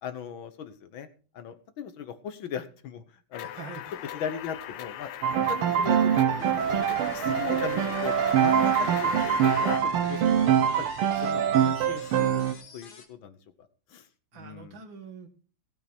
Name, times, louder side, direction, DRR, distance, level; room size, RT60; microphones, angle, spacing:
voice 1, 0.0-1.1 1.3-3.0 3.3-3.5 4.1-6.0 6.4-8.1 8.4-10.4 10.8-10.9 11.2-12.5 12.7-13.4 13.9-14.1 14.3-14.8, left 7 dB, 70° left, 11 dB, 1.8 m, -38 dB
sound 1, 3.3-9.8, left 11 dB, 85° left, 1.7 m, -38 dB
voice 2, 3.4-3.8 5.6-5.8 14.3-15.3, right 6 dB, 65° right, 7 dB, 2.3 m, -44 dB
sound 2, 3.9-13.1, left 4 dB, 50° left, 2.0 m, -46 dB
Piano, 5.2-12.5, right 9 dB, 80° right, 1.7 m, -24 dB
16.0 x 8.5 x 4.4 m, 0.38 s
omnidirectional pair, 2.4 m